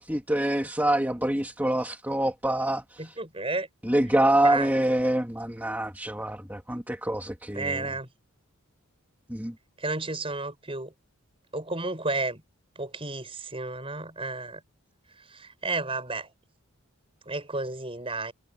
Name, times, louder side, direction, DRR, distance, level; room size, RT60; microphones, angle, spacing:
voice 1, 0.0-3.2 3.8-7.9 9.3-9.5, right 1 dB, 10° right, 2.3 m, -26 dB
voice 2, 3.0-3.7 4.4-4.7 7.5-8.1 9.8-10.9 11.5-12.4 12.8-14.6 15.3-16.3 17.3-18.3, right 3 dB, 25° right, 7.3 m, -32 dB
head